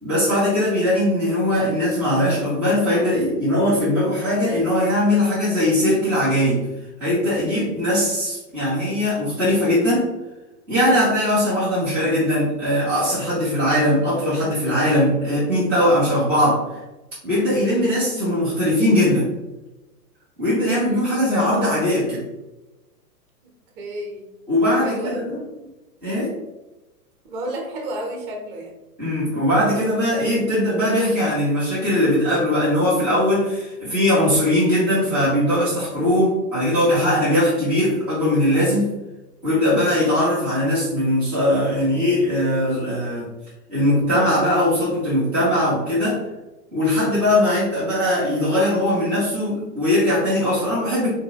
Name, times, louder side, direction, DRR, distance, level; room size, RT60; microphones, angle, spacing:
voice 1, 0.0-6.6 7.0-10.1 10.7-16.6 17.2-19.3 20.4-22.2 24.5-25.4 26.0-26.3 29.0-38.9 39.4-43.3 43.7-46.2 46.7-51.1, left 1 dB, 5° right, -12 dB, 0.3 m, -20 dB
voice 2, 20.7-21.2 23.8-24.3 24.8-25.2 27.3-28.7, right 1 dB, 20° right, 1 dB, 0.7 m, -31 dB
3.9 x 2.7 x 2.7 m, 1.0 s
hypercardioid pair, 125°, 49 cm